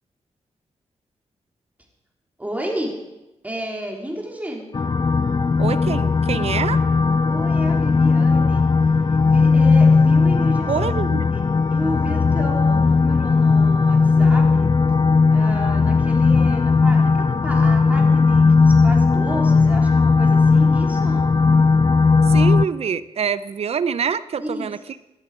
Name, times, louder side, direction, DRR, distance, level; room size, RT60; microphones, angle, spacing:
voice 1, 2.4-2.9 3.4-4.7 7.2-8.7 9.1-14.7 15.3-21.3 24.4-24.7, equal, 15° right, 0 dB, 3.5 m, -32 dB
sound 1, 4.7-22.7, left 4 dB, 35° left, 0.6 m, -17 dB
voice 2, 5.6-6.8 10.7-11.3 22.3-25.0, right 7 dB, 60° right, 15 dB, 0.5 m, -25 dB
17.5 x 11.5 x 5.0 m, 0.98 s
cardioid pair, 75°, 12 cm